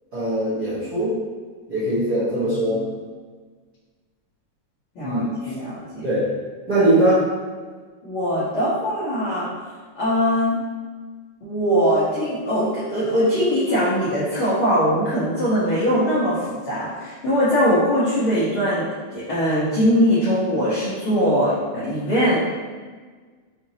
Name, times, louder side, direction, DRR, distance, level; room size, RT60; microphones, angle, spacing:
voice 1, 0.1-1.2 1.7-2.8 5.0-5.3 6.0-6.3 6.7-7.2, right 1 dB, 70° right, -13 dB, 0.9 m, -20 dB
voice 2, 2.3-2.9 4.9-6.1 8.0-9.5 10.0-10.6 11.4-22.4, equal, 75° left, -11 dB, 1.2 m, -21 dB
5.6 x 3.0 x 2.8 m, 1.5 s
omnidirectional pair, 3.9 m